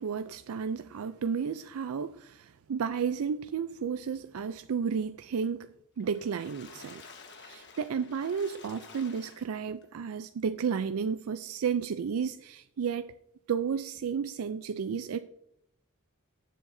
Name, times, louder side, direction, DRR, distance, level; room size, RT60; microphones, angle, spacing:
voice 1, 0.0-5.7 6.0-7.0 7.4-13.1 13.5-15.2, right 6 dB, 70° right, 11 dB, 0.4 m, -32 dB
Water / Splash splatter, 6.0-9.8 10.4-10.5 10.8-10.9, left 4 dB, 50° left, 1.3 m, -51 dB
15.5 x 7.5 x 2.6 m, 0.79 s
head